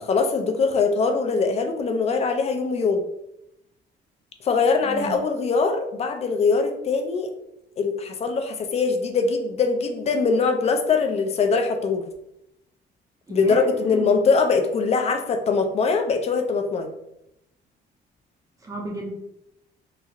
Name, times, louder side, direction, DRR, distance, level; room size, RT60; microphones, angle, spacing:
voice 1, 0.0-3.0 4.4-7.3 7.8-12.0 13.3-16.9, left 4 dB, 35° left, 5 dB, 0.3 m, -22 dB
voice 2, 4.8-5.2 13.3-14.1 18.6-19.1, right 2 dB, 20° right, -1 dB, 0.6 m, -34 dB
2.9 x 2.5 x 2.4 m, 0.83 s
cardioid pair, 145°, 18 cm